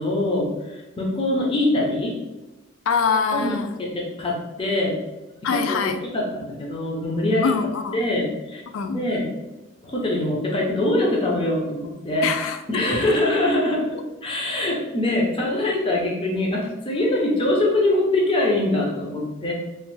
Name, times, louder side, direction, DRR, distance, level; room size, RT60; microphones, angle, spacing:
voice 1, 0.0-2.1 3.3-5.0 5.7-7.5 7.9-9.2 9.8-12.3 12.7-19.5, left 1 dB, 25° left, -2 dB, 0.5 m, -23 dB
voice 2, 2.9-3.7 5.4-6.0 7.4-8.1 8.7-9.0 12.2-13.2, left 5 dB, 75° left, 8 dB, 0.3 m, -24 dB
3.1 x 2.1 x 3.1 m, 1.1 s
head